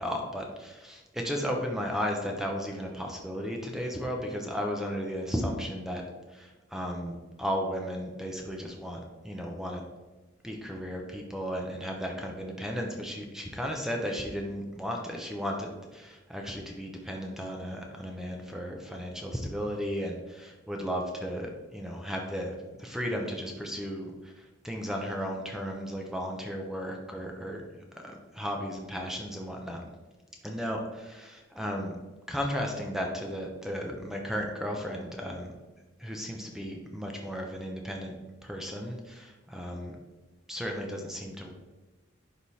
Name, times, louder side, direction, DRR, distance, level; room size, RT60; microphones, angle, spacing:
voice 1, 0.0-6.0 6.3-9.8 10.4-29.8 30.4-32.0 32.3-35.5 36.0-38.1 38.4-39.9 40.5-41.5, equal, ahead, 1 dB, 0.8 m, -35 dB
11.0 x 3.8 x 4.2 m, 1.2 s
head